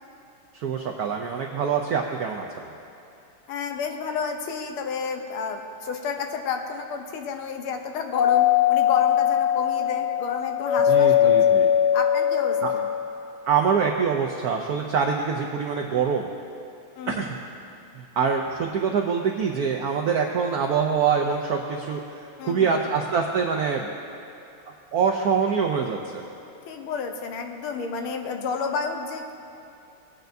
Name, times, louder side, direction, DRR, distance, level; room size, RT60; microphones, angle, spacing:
voice 1, 0.5-2.7 10.9-11.7 12.6-12.7 13.5-16.3 17.1-17.4 17.9-22.0 22.4-23.9 24.9-26.2, right 6 dB, 80° right, 2 dB, 0.8 m, -25 dB
voice 2, 3.5-11.6 11.9-12.9 17.0-17.4 22.4-22.8 26.7-29.3, left 5 dB, 80° left, 5 dB, 1.6 m, -31 dB
Doorbell, 8.1-13.0, left 10 dB, 50° left, 0.9 m, -20 dB
18.5 x 9.0 x 2.6 m, 2.8 s
omnidirectional pair, 2.4 m